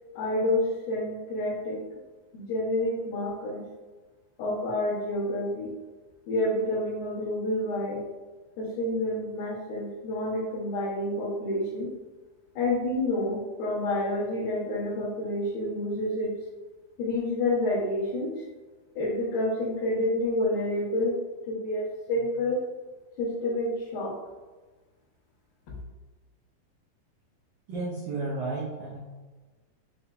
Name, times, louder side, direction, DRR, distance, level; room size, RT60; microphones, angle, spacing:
voice 1, 0.2-1.8 2.3-3.6 4.4-5.7 6.3-8.0 8.6-11.9 12.6-16.3 17.0-18.4 19.0-21.2 21.5-22.6 23.2-24.2, left 1 dB, 70° left, -10 dB, 2.7 m, -28 dB
voice 2, 27.7-29.0, right 3 dB, 75° right, -6 dB, 1.8 m, -32 dB
7.0 x 2.6 x 2.3 m, 1.3 s
omnidirectional pair, 4.4 m